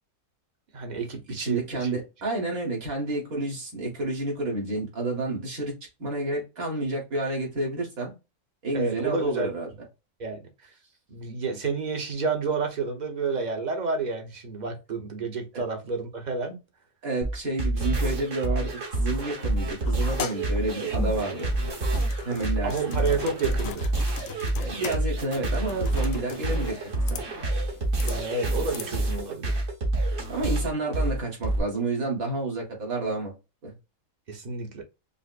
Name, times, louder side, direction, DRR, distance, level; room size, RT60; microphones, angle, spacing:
voice 1, 0.7-1.9 8.7-9.5 10.2-10.5 11.1-16.6 22.6-23.9 28.0-29.6 34.3-34.8, right 4 dB, 40° right, 0.8 m, -30 dB
voice 2, 1.4-5.7 6.0-8.1 8.6-9.7 17.0-18.7 19.0-21.5 22.3-23.1 24.6-26.8 27.1-27.3 30.3-33.3 33.6-33.7, right 2 dB, 80° right, 2.1 m, -30 dB
sound 1, 17.2-31.6, right 2 dB, 65° right, 1.5 m, -28 dB
sound 2, 19.8-29.3, left 7 dB, 65° left, 0.9 m, -40 dB
5.2 x 2.0 x 2.3 m
omnidirectional pair, 1.4 m